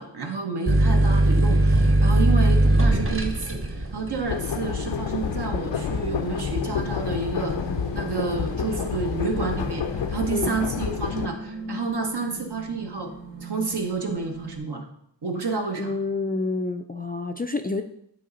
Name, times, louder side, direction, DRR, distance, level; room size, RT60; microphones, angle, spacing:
voice 1, 0.0-7.5 7.9-13.1 13.4-14.8 15.2-16.0, right 4 dB, 65° right, 2 dB, 1.1 m, -30 dB
sound 1, 0.7-7.9 8.4-9.1, right 1 dB, 30° right, 0.8 m, -21 dB
sound 2, 0.9-14.6, right 1 dB, 45° right, 2.6 m, -40 dB
sound 3, 4.3-11.3, left 7 dB, 80° left, 0.6 m, -29 dB
voice 2, 15.8-17.8, left 3 dB, 25° left, 7 dB, 0.3 m, -28 dB
8.4 x 3.2 x 3.9 m, 0.72 s
wide cardioid pair, 55°, 43 cm